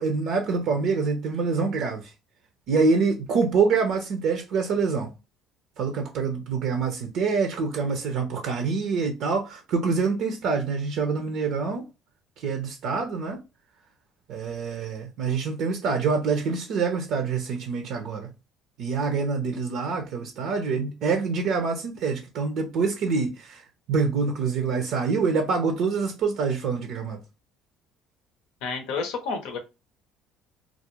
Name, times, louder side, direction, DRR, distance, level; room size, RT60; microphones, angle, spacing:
voice 1, 0.0-2.1 2.7-5.1 5.8-11.8 12.4-13.4 14.3-18.3 18.8-23.6 23.9-27.2, right 4 dB, 65° right, 0.5 m, -26 dB
voice 2, 28.6-29.6, left 5 dB, 75° left, 0.6 m, -30 dB
2.4 x 2.0 x 2.9 m
hypercardioid pair, 70°, 0 cm